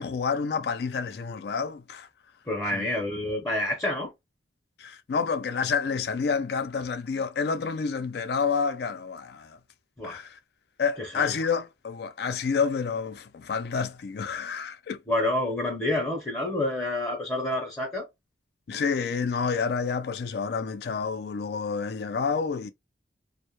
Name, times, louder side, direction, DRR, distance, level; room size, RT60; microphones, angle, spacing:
voice 1, 0.0-2.1 2.7-2.9 4.8-9.6 10.0-10.4 10.8-15.0 18.7-22.7, left 5 dB, 60° left, 0.3 m, -29 dB
voice 2, 2.5-4.1 10.0-10.2 11.0-11.3 15.1-18.0, left 1 dB, 15° left, 0.6 m, -28 dB
2.1 x 2.0 x 2.9 m
head